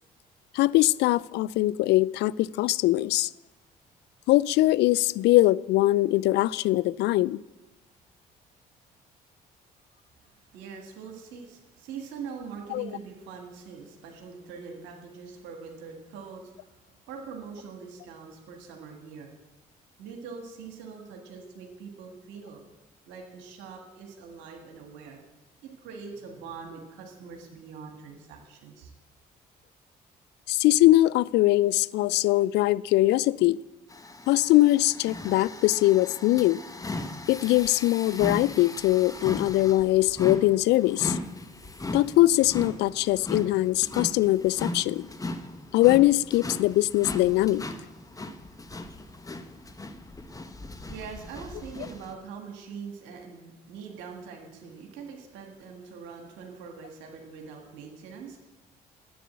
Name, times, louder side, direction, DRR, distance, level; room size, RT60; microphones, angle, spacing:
voice 1, 0.5-3.3 4.3-7.4 12.7-12.9 30.5-33.6 34.3-36.6 37.3-41.2 41.9-45.1 45.7-47.6, left 17 dB, 60° left, 0.4 m, -22 dB
voice 2, 10.2-19.3 20.0-22.6 23.0-25.2 25.6-28.9 50.6-58.5, right 5 dB, 70° right, 1.6 m, -43 dB
sound 1, 33.9-52.1, left 2 dB, 15° left, 1.2 m, -38 dB
10.5 x 8.2 x 7.4 m
hypercardioid pair, 50°, 20 cm